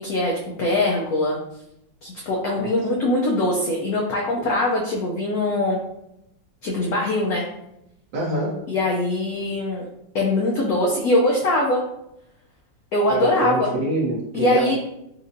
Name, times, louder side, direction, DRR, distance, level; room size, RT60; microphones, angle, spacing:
voice 1, 0.0-1.4 2.0-5.8 6.6-7.5 8.7-9.9 10.1-11.8 12.9-13.7 14.3-14.8, left 1 dB, 70° left, -3 dB, 0.9 m, -22 dB
voice 2, 8.1-8.6 13.1-14.8, right 1 dB, 70° right, -5 dB, 1.2 m, -25 dB
4.2 x 2.5 x 2.6 m, 0.82 s
omnidirectional pair, 2.2 m